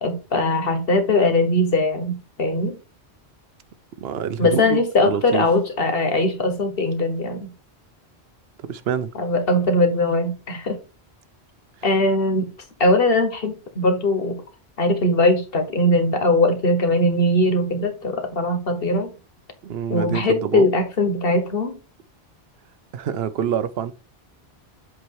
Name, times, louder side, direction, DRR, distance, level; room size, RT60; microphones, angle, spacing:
voice 1, 0.0-2.8 4.4-7.5 9.1-10.8 11.8-12.5 12.8-14.4 14.8-19.1 19.9-21.8, left 1 dB, 60° left, 1.4 m, -20 dB
voice 2, 4.0-5.4 8.7-9.1 19.6-20.7 22.9-23.9, right 8 dB, 70° right, 0.8 m, -26 dB
7.9 x 3.0 x 4.6 m
omnidirectional pair, 1.1 m